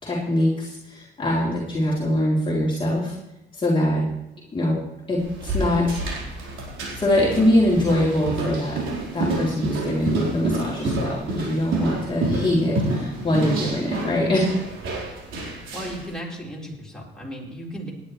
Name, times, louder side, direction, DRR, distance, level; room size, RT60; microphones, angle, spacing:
voice 1, 0.0-3.2 3.5-4.1 4.5-4.8 5.1-6.0 6.9-8.8 9.1-14.5, left 1 dB, 25° left, -6 dB, 3.3 m, -23 dB
sound 1, 5.2-16.1, right 2 dB, 80° right, 4.4 m, -29 dB
voice 2, 15.7-17.9, equal, 5° left, -5 dB, 4.4 m, -35 dB
18.0 x 10.5 x 3.3 m, 0.90 s
cardioid pair, 90°, 20 cm